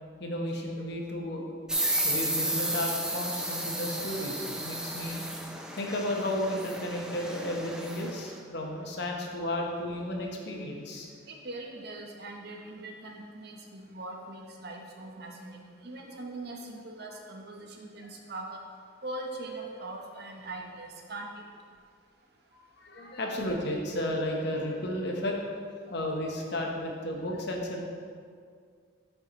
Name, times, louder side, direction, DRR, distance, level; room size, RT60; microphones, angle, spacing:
voice 1, 0.2-1.5 2.0-5.2 5.7-11.1 22.5-25.4 25.9-27.8, left 1 dB, 55° left, 0 dB, 0.9 m, -33 dB
sound 1, 1.7-8.2, right 1 dB, 5° right, 0.4 m, -33 dB
voice 2, 11.3-18.6 19.0-21.3, right 2 dB, 50° right, 1 dB, 0.8 m, -41 dB
9.0 x 5.7 x 3.0 m, 2.1 s
head